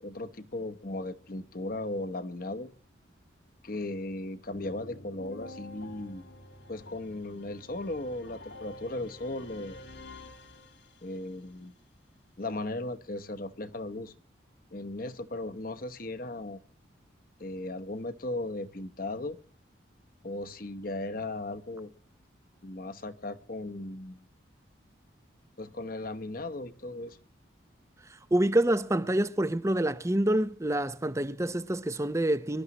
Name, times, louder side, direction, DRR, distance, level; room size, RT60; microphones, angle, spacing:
voice 1, 0.0-2.7 3.6-6.3 6.7-9.8 11.0-11.7 12.4-14.1 14.7-16.6 17.4-19.4 20.2-21.9 22.6-24.2 25.6-27.2, left 2 dB, 45° left, 1.0 m, -37 dB
sound 1, 4.5-11.3, left 2 dB, 65° left, 1.6 m, -48 dB
voice 2, 28.1-32.6, right 1 dB, 15° right, 0.7 m, -27 dB
25.0 x 12.5 x 3.0 m
head